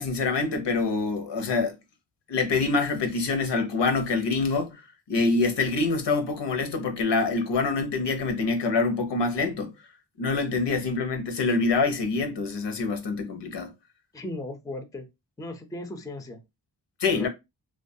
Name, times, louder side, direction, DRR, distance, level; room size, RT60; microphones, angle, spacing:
voice 1, 0.0-1.7 2.3-4.8 5.1-9.7 10.2-13.7 17.0-17.3, left 3 dB, 80° left, 0.7 m, -25 dB
voice 2, 14.1-15.1 15.4-16.4 17.1-17.3, left 1 dB, 10° left, 0.4 m, -36 dB
2.3 x 2.2 x 2.6 m
wide cardioid pair, 85°, 42 cm